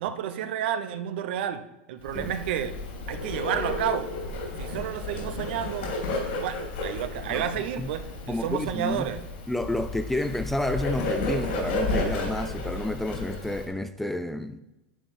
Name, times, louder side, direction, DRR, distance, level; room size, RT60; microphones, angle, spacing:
voice 1, 0.0-1.6 1.9-2.7 3.1-4.2 4.6-6.0 6.3-9.2, right 9 dB, 70° right, 0.8 m, -31 dB
Bird, 2.0-13.6, left 2 dB, 80° left, 3.1 m, -32 dB
voice 2, 7.3-7.9 8.3-9.1 9.5-14.6, left 1 dB, 5° left, 0.3 m, -30 dB
10.0 x 7.2 x 4.3 m
supercardioid pair, 150°, 6 cm